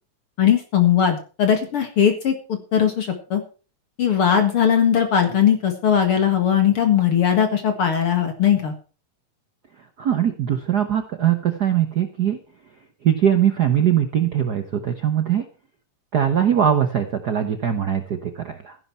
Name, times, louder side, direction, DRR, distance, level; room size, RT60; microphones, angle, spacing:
voice 1, 0.4-3.4 4.0-8.7, left 8 dB, 50° left, 6 dB, 2.4 m, -19 dB
voice 2, 10.0-12.4 13.0-15.4 16.1-18.8, right 9 dB, 80° right, 8 dB, 0.9 m, -21 dB
15.0 x 11.0 x 4.5 m, 0.36 s
omnidirectional pair, 3.4 m